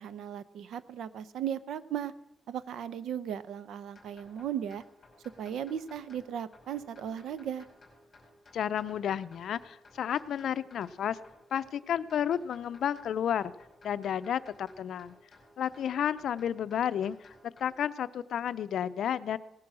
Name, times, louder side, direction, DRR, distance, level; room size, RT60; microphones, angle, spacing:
voice 1, 0.0-2.1 2.5-4.8 5.4-7.7, right 9 dB, 80° right, 15 dB, 0.7 m, -36 dB
sound 1, 3.9-17.7, left 2 dB, 25° left, 5.2 m, -58 dB
voice 2, 8.5-11.2 11.5-13.5 13.8-15.1 15.6-17.2 17.4-19.4, left 9 dB, 70° left, 14 dB, 0.6 m, -31 dB
18.0 x 10.5 x 6.2 m, 0.88 s
cardioid pair, 145°, 0 cm